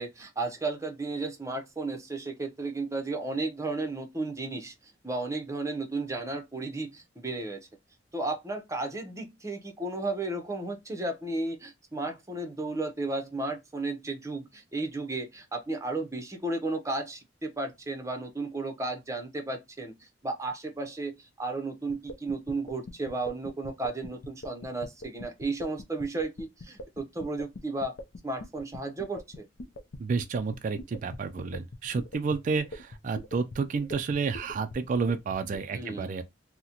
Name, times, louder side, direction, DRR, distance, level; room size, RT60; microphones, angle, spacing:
voice 1, 0.0-7.7 8.1-27.9 28.2-29.5 35.7-36.2, right 2 dB, 15° right, 0.7 m, -34 dB
sound 1, 21.9-35.6, left 1 dB, 60° left, 0.5 m, -42 dB
voice 2, 30.0-36.2, right 4 dB, 45° right, 0.3 m, -30 dB
3.8 x 2.1 x 2.8 m
head